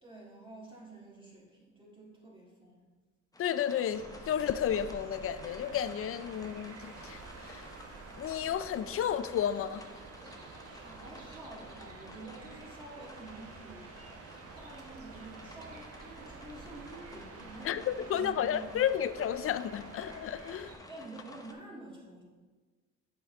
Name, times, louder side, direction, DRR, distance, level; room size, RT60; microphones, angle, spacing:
voice 1, 0.0-2.8 10.7-18.8 20.9-22.2, right 2 dB, 15° right, -6 dB, 2.0 m, -49 dB
sound 1, 3.3-21.5, left 1 dB, 10° left, 0.8 m, -53 dB
voice 2, 3.4-7.7 8.2-9.8 17.6-20.7, left 9 dB, 50° left, 13 dB, 0.4 m, -32 dB
sound 2, 3.9-20.8, right 4 dB, 50° right, 1.1 m, -49 dB
7.9 x 5.1 x 3.7 m, 1.4 s
cardioid pair, 90°, 30 cm